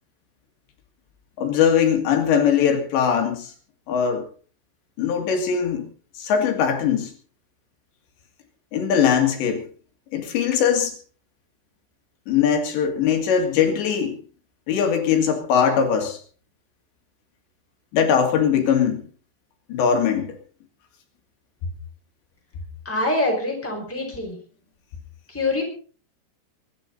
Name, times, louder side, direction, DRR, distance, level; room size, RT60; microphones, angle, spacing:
voice 1, 1.4-3.5 3.9-4.3 5.0-5.9 6.2-7.1 8.7-9.6 10.1-10.9 12.3-14.2 14.7-16.2 17.9-19.0 19.7-20.4, left 7 dB, 75° left, 4 dB, 4.2 m, -21 dB
voice 2, 22.8-24.4 25.3-25.6, left 2 dB, 5° left, 0 dB, 4.5 m, -25 dB
23.5 x 11.0 x 4.0 m, 0.40 s
omnidirectional pair, 5.2 m